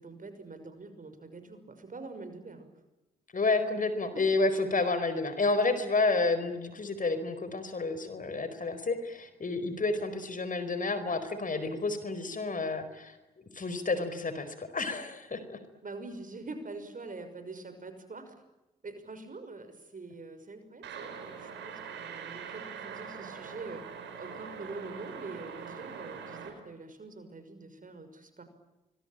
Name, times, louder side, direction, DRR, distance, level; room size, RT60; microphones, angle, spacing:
voice 1, 0.0-2.7 4.1-4.2 15.8-18.3 18.8-23.8 24.2-28.4, right 3 dB, 45° right, 9 dB, 6.1 m, -44 dB
voice 2, 3.3-13.2 13.5-15.6, left 3 dB, 45° left, 11 dB, 4.6 m, -30 dB
sound 1, 20.8-26.5, right 6 dB, 80° right, 5.0 m, -43 dB
25.0 x 22.5 x 9.0 m, 1.0 s
hypercardioid pair, 40°, 19 cm